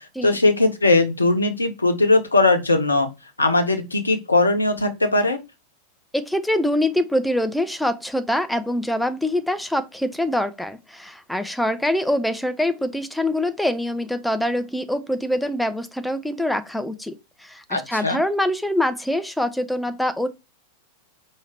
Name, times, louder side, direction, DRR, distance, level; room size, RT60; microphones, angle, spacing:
voice 1, 0.2-3.1 3.4-5.4 17.7-18.2, left 2 dB, 80° left, 0.8 m, -19 dB
voice 2, 6.1-20.3, left 1 dB, ahead, 0.5 m, -24 dB
4.7 x 2.6 x 3.3 m
figure-of-eight pair, 90°, 0 cm